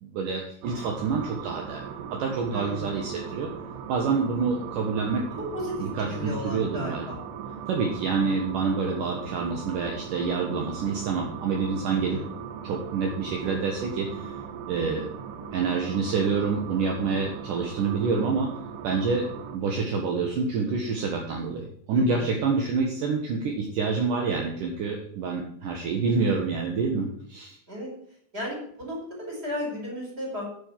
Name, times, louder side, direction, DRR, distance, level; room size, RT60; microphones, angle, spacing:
voice 1, 0.0-1.9 2.2-3.5 3.9-5.3 5.8-7.1 7.7-12.2 12.6-14.3 14.7-15.1 15.5-18.5 18.8-27.6, right 4 dB, 70° right, 1 dB, 2.1 m, -27 dB
sound 1, 0.6-19.6, right 7 dB, 90° right, 3.8 m, -39 dB
voice 2, 2.5-2.9 5.3-7.2 11.9-12.3 21.9-22.2 27.7-27.9 28.3-30.5, equal, 15° right, -1 dB, 4.6 m, -34 dB
8.9 x 8.7 x 7.5 m, 0.65 s
omnidirectional pair, 5.7 m